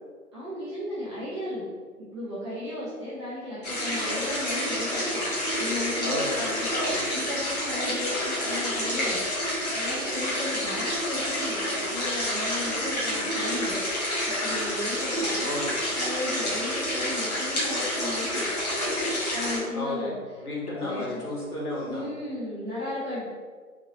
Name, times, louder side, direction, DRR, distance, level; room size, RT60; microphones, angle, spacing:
voice 1, 0.3-1.7 2.0-11.6 11.9-18.4 19.3-20.1 20.7-21.3 21.9-23.3, left 1 dB, 20° right, -10 dB, 0.7 m, -35 dB
sound 1, 3.6-19.6, left 1 dB, 30° left, 0.7 m, -29 dB
voice 2, 6.0-7.1 15.4-15.8 19.7-22.1, left 1 dB, 80° left, -5 dB, 1.3 m, -33 dB
3.0 x 2.6 x 2.9 m, 1.6 s
figure-of-eight pair, 145°, 44 cm